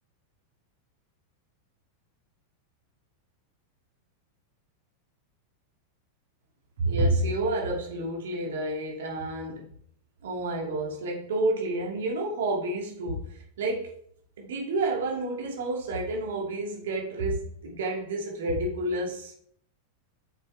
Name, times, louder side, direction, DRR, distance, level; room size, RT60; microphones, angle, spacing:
voice 1, 6.8-9.7 10.2-14.0 14.4-19.3, right 2 dB, 60° right, -1 dB, 2.5 m, -29 dB
9.1 x 7.1 x 3.4 m, 0.64 s
figure-of-eight pair, 90°, 0 cm